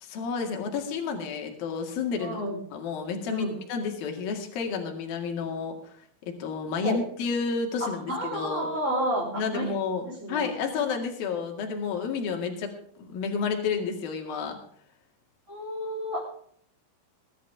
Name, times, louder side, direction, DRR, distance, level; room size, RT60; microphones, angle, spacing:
voice 1, 0.0-2.4 2.7-5.8 6.3-8.7 9.3-12.7 13.0-14.6, left 5 dB, 70° left, 3 dB, 4.0 m, -30 dB
voice 2, 2.2-2.6 3.3-3.6 6.8-7.0 7.8-9.7 10.0-10.5 15.5-16.2, equal, 20° right, -5 dB, 3.7 m, -31 dB
19.5 x 12.0 x 3.6 m, 0.63 s
omnidirectional pair, 4.4 m